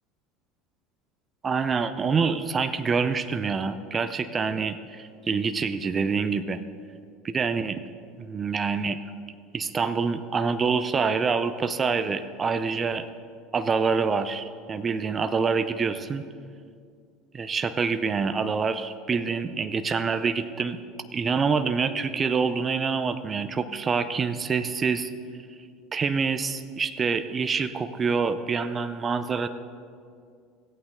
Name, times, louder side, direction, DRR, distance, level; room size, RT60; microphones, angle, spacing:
voice 1, 1.4-6.6 7.2-7.8 8.2-9.0 9.5-13.1 13.5-16.2 17.3-20.8 21.1-25.1 25.9-29.5, right 5 dB, 30° right, 11 dB, 0.6 m, -26 dB
15.5 x 8.6 x 3.9 m, 2.2 s
hypercardioid pair, 80°, 0 cm